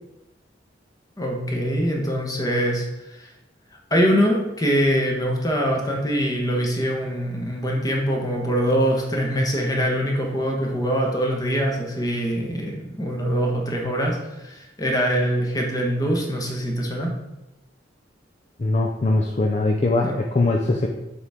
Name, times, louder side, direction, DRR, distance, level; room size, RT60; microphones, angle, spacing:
voice 1, 1.2-2.8 3.1-3.3 3.9-17.1 20.0-20.2, equal, 20° left, -1 dB, 1.2 m, -23 dB
voice 2, 18.6-20.9, left 2 dB, 35° left, 1 dB, 0.5 m, -21 dB
6.9 x 3.5 x 5.0 m, 0.95 s
head